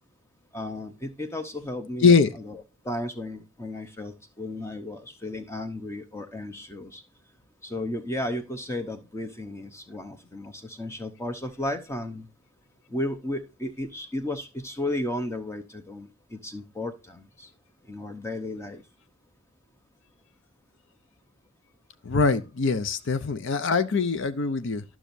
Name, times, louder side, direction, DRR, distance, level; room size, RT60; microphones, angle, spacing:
voice 1, 0.5-7.0 7.6-12.3 12.9-17.5 17.9-18.8, left 1 dB, 10° left, 0.8 m, -34 dB
voice 2, 2.0-2.3 22.0-24.8, left 4 dB, 55° left, 0.5 m, -22 dB
12.0 x 6.0 x 2.6 m
head